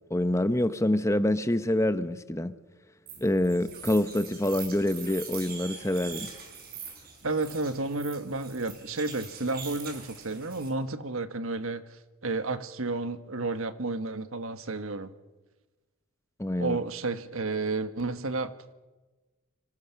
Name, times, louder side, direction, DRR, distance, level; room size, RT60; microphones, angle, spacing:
voice 1, 0.1-2.5 3.2-6.3 16.4-16.8, left 1 dB, 15° left, 0.9 m, -26 dB
sound 1, 3.1-10.7, right 6 dB, 45° right, 4.9 m, -43 dB
voice 2, 7.2-15.1 16.6-18.5, right 3 dB, 65° right, 1.5 m, -31 dB
27.5 x 25.0 x 5.9 m
head